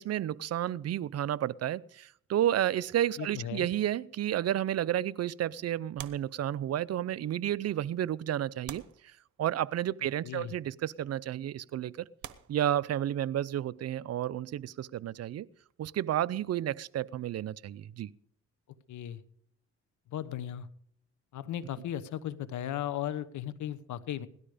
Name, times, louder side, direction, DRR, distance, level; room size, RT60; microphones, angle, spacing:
voice 1, 0.0-8.8 9.4-12.1 12.5-15.5 15.8-18.1, right 11 dB, 55° right, 20 dB, 0.6 m, -31 dB
voice 2, 3.2-3.7 10.2-10.5 18.9-19.2 20.1-20.7 21.3-24.3, left 11 dB, 75° left, 15 dB, 1.1 m, -36 dB
sound 1, 6.0-7.0 7.8-7.9 8.6-9.7 10.7-10.9 11.6-11.7 12.2-13.4 15.3-17.1 17.4-17.6, right 12 dB, 70° right, 1.1 m, -49 dB
17.5 x 12.5 x 5.0 m, 0.66 s
cardioid pair, 90°, 30 cm